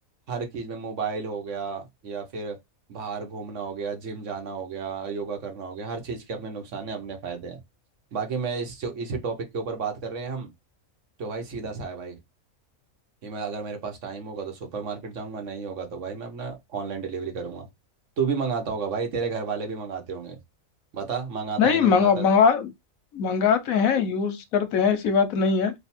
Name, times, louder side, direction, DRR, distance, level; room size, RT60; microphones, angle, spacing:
voice 1, 0.3-2.6 2.9-7.6 8.1-10.5 11.2-12.2 13.2-17.7 18.2-20.4 20.9-22.2, right 5 dB, 65° right, 1.3 m, -32 dB
voice 2, 21.6-22.7 23.1-25.7, left 6 dB, 85° left, 1.2 m, -21 dB
3.4 x 2.6 x 4.2 m
omnidirectional pair, 1.4 m